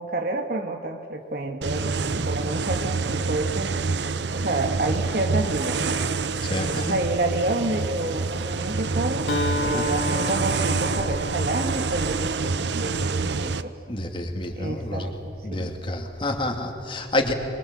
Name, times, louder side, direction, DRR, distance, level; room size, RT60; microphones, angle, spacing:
voice 1, 0.0-3.7 4.3-6.0 6.5-9.3 9.6-13.7 14.6-15.8, right 2 dB, 50° right, 3 dB, 1.3 m, -29 dB
sound 1, 1.6-13.6, right 4 dB, 70° right, 0.8 m, -27 dB
voice 2, 6.4-7.0 9.7-10.0 13.9-15.1 15.4-17.3, left 1 dB, 25° left, 4 dB, 2.3 m, -28 dB
Acoustic guitar, 9.3-13.1, left 1 dB, 85° left, 2.2 m, -31 dB
24.5 x 22.5 x 8.5 m, 2.8 s
head